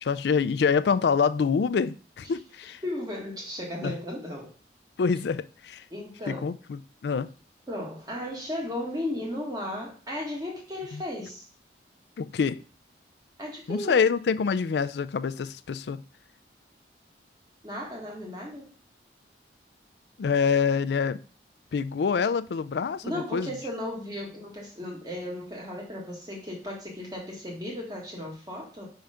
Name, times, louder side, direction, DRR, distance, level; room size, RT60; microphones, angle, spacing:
voice 1, 0.0-2.8 3.8-4.0 5.0-5.8 6.3-7.3 10.9-11.0 12.2-12.6 13.7-16.0 20.2-21.2 21.7-23.5, left 6 dB, 70° left, 0.4 m, -26 dB
voice 2, 2.8-4.5 5.9-6.5 7.7-11.5 13.4-14.0 17.6-18.7 23.0-28.9, left 1 dB, 20° right, 1.7 m, -35 dB
5.5 x 3.5 x 5.0 m
head